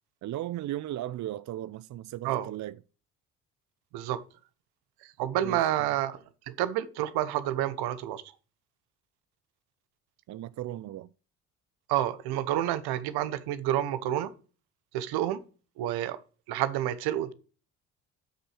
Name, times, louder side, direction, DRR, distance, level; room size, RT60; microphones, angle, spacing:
voice 1, 0.2-2.8 5.4-5.9 10.3-11.1, right 13 dB, 45° right, 0.5 m, -36 dB
voice 2, 5.0-6.2 6.5-8.2 11.9-14.3 14.9-15.4 15.8-16.2 16.5-17.3, right 12 dB, 70° right, 1.0 m, -29 dB
8.2 x 6.2 x 6.4 m
hypercardioid pair, 55°, 39 cm